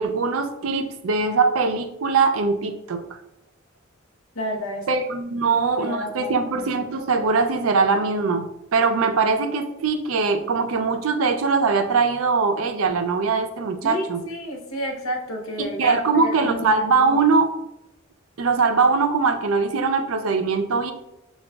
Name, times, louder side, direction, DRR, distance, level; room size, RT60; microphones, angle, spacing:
voice 1, 0.0-3.0 4.9-8.5 8.7-14.2 15.6-17.5 18.4-20.9, right 4 dB, 75° right, 7 dB, 0.5 m, -21 dB
voice 2, 4.3-4.9 5.4-6.8 13.8-16.7 17.0-17.2, equal, 80° left, 3 dB, 0.7 m, -31 dB
5.8 x 2.3 x 2.2 m, 0.87 s
head